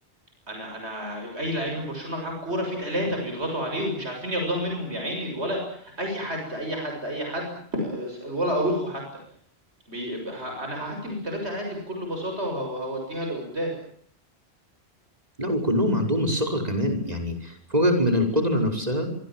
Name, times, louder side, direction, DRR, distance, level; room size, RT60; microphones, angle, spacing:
voice 1, 0.5-9.2 9.9-13.8, equal, 90° right, 2 dB, 7.4 m, -30 dB
voice 2, 15.4-19.1, equal, 40° right, 4 dB, 5.8 m, -24 dB
26.5 x 24.0 x 7.7 m, 0.63 s
omnidirectional pair, 1.1 m